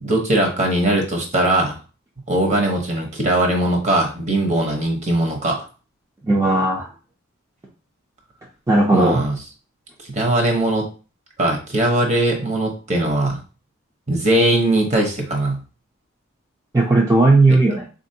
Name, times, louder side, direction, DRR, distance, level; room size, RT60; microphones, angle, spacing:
voice 1, 0.0-1.8 2.3-5.6 8.9-9.4 10.1-10.8 11.4-13.4 14.1-15.6, right 1 dB, 35° right, 1 dB, 0.9 m, -20 dB
voice 2, 6.2-6.9 8.7-9.2 16.7-17.9, right 2 dB, 15° right, -2 dB, 0.4 m, -16 dB
3.8 x 2.6 x 2.7 m, 0.35 s
head